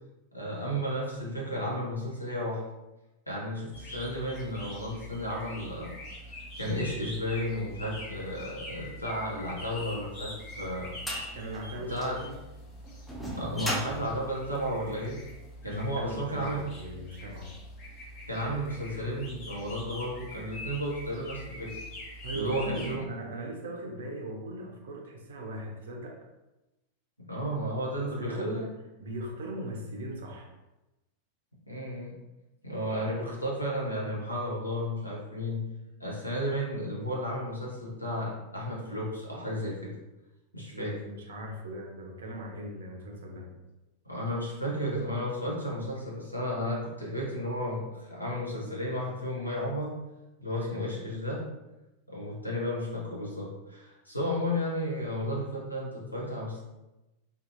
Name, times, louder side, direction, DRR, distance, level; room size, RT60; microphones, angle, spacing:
voice 1, 0.3-2.6 3.3-5.9 6.6-11.0 11.9-12.2 13.4-15.2 15.6-16.6 18.3-21.8 22.3-23.1 27.3-28.6 31.7-32.2 32.6-35.7 36.0-40.0 40.5-40.9 44.1-50.0 50.4-51.4 52.1-56.6, equal, 85° left, -4 dB, 0.7 m, -33 dB
sound 1, 3.7-23.0, left 1 dB, 35° left, 0.8 m, -44 dB
sound 2, 10.0-15.3, equal, 5° left, 0.5 m, -38 dB
voice 2, 11.3-12.4 15.6-17.6 22.2-26.2 27.9-30.5 40.7-43.6 50.5-50.9, right 1 dB, 60° right, 1 dB, 0.5 m, -39 dB
2.6 x 2.4 x 2.5 m, 1.0 s
figure-of-eight pair, 90°, 0 cm